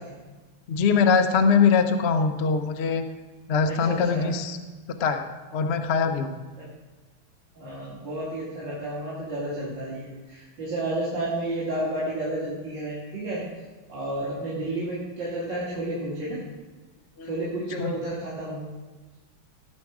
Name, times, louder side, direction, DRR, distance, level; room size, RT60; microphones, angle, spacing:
voice 1, 0.7-3.0 3.5-4.6 5.0-6.3 17.2-17.4 17.8-17.9, left 5 dB, 50° left, 6 dB, 0.8 m, -22 dB
voice 2, 3.9-4.3 6.6-6.7 7.5-13.4 13.9-16.4 17.2-18.7, right 1 dB, 60° right, -9 dB, 3.6 m, -31 dB
18.0 x 7.5 x 4.9 m, 1.3 s
omnidirectional pair, 2.3 m